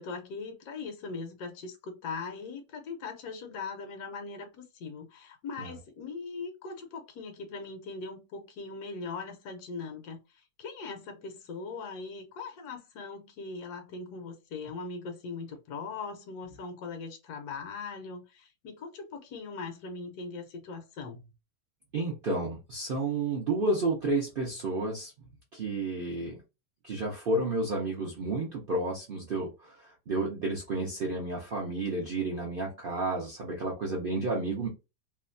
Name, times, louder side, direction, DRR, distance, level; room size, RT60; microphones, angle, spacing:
voice 1, 0.0-21.3, left 4 dB, 75° left, 1.1 m, -40 dB
voice 2, 21.9-25.1 25.5-26.4 26.8-34.7, right 2 dB, 65° right, 0.5 m, -31 dB
2.8 x 2.3 x 2.5 m
omnidirectional pair, 1.8 m